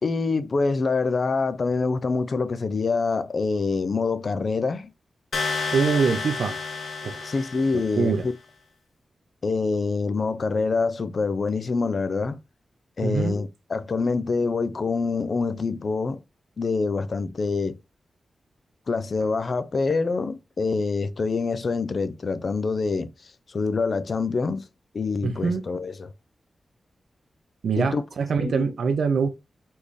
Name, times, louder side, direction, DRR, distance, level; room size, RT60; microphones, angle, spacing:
voice 1, 0.0-4.9 7.2-8.3 9.4-12.4 13.0-16.2 16.6-17.7 18.9-24.6 24.9-26.1 27.8-28.0 28.4-28.7, left 4 dB, 50° left, 0.5 m, -26 dB
sound 1, 5.3-8.2, left 4 dB, 80° left, 0.9 m, -31 dB
voice 2, 5.7-6.6 7.0-7.3 7.7-8.2 13.0-13.4 25.2-25.6 27.6-29.3, right 5 dB, 90° right, 0.7 m, -24 dB
4.3 x 3.5 x 3.1 m
wide cardioid pair, 125°, 0 cm